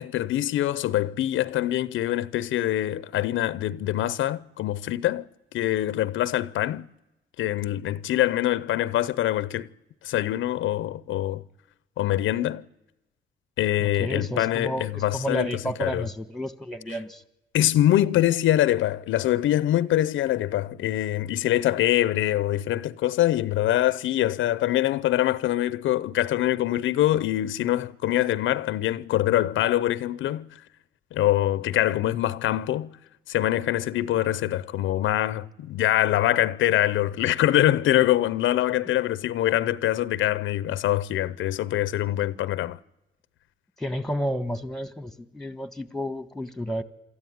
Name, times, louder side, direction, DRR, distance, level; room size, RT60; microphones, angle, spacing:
voice 1, 0.0-5.3 5.5-6.9 7.4-9.7 10.0-11.4 12.0-12.6 13.6-16.0 17.5-30.5 31.1-32.9 33.3-42.8, left 13 dB, 80° left, 0.7 m, -24 dB
voice 2, 13.8-17.2 43.8-46.8, equal, ahead, 1.5 m, -31 dB
26.5 x 13.5 x 9.4 m
cardioid pair, 90°, 20 cm